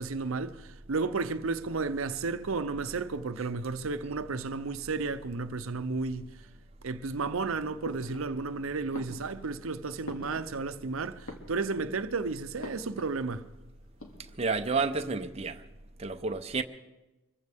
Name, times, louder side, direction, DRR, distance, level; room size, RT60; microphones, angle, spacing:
voice 1, 0.0-6.3 6.8-13.5, right 4 dB, 75° right, 0.7 m, -33 dB
sound 1, 7.8-8.6 8.9-10.9 11.2-12.0 12.6-13.2 13.5-13.6 13.8-14.6, left 1 dB, 90° left, 2.3 m, -45 dB
voice 2, 14.2-15.6 16.0-16.6, right 4 dB, 30° right, 0.6 m, -30 dB
25.0 x 15.0 x 3.5 m
head